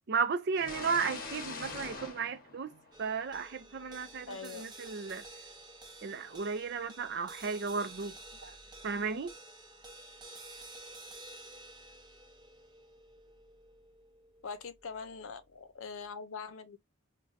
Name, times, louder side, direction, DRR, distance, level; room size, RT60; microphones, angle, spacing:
voice 1, 0.1-5.3 6.0-8.6 8.8-9.3, right 5 dB, 50° right, 0.4 m, -34 dB
sound 1, 0.5-3.4, left 3 dB, 45° left, 0.9 m, -43 dB
sound 2, 2.9-15.4, right 2 dB, 20° right, 0.7 m, -51 dB
voice 2, 4.3-4.6 14.4-16.8, left 5 dB, 75° left, 0.6 m, -43 dB
5.1 x 2.2 x 2.4 m
head